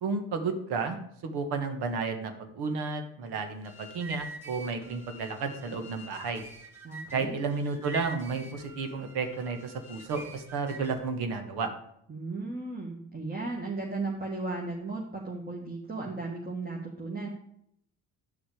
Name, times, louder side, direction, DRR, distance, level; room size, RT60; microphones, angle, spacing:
voice 1, 0.0-6.4 7.1-11.7, right 4 dB, 75° right, 6 dB, 1.5 m, -32 dB
sound 1, 3.5-11.1, right 1 dB, 5° right, 2.2 m, -45 dB
voice 2, 6.8-7.3 12.1-17.3, right 3 dB, 25° right, -2 dB, 1.7 m, -35 dB
9.8 x 6.1 x 4.9 m, 0.72 s
supercardioid pair, 65°, 39 cm